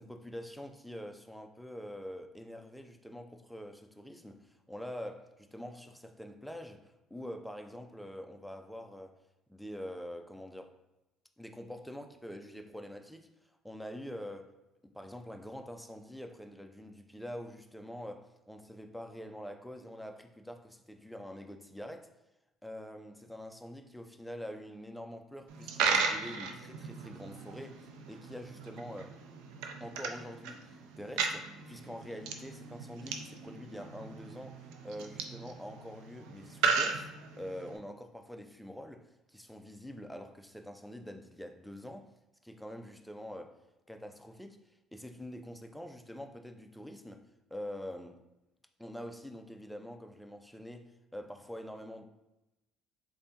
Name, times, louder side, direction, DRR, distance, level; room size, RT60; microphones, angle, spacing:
voice 1, 0.0-9.2 9.5-10.8 11.4-13.3 13.6-14.5 14.8-22.1 22.6-29.2 29.8-42.1 42.4-43.6 43.9-44.6 44.9-48.2 48.8-52.0, equal, ahead, 0.4 m, -45 dB
Coin (dropping), 25.5-37.8, right 5 dB, 85° right, 0.4 m, -36 dB
3.6 x 3.4 x 2.8 m
cardioid pair, 105°, 0 cm